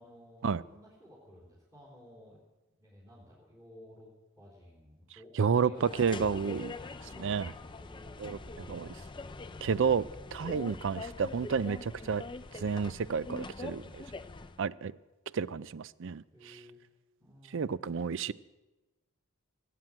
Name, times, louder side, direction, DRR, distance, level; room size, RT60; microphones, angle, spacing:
voice 1, 0.0-2.4 2.8-8.7 10.4-10.6 16.3-16.8 17.2-17.9, left 1 dB, 15° right, -8 dB, 3.9 m, -53 dB
voice 2, 5.3-6.7 7.2-7.5 8.2-8.9 9.6-10.0 10.3-12.2 12.5-14.0 14.6-14.9 15.3-16.6 17.5-18.3, right 6 dB, 55° right, 18 dB, 0.4 m, -31 dB
sound 1, 5.8-14.6, left 3 dB, 20° left, 0.5 m, -44 dB
18.5 x 7.7 x 8.9 m, 1.1 s
head